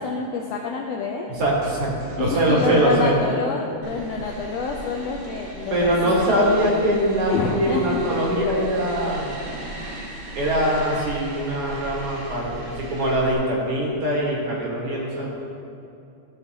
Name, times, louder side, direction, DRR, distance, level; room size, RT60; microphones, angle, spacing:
voice 1, 0.0-1.3 2.2-6.3 6.6-7.0 7.3-8.0, left 5 dB, 80° left, 0 dB, 1.5 m, -27 dB
voice 2, 1.3-3.2 5.7-9.4 10.3-15.4, right 1 dB, 55° right, -4 dB, 2.2 m, -22 dB
sound 1, 3.8-13.3, right 1 dB, 75° right, 2.8 m, -37 dB
14.0 x 6.8 x 2.8 m, 2.7 s
omnidirectional pair, 3.5 m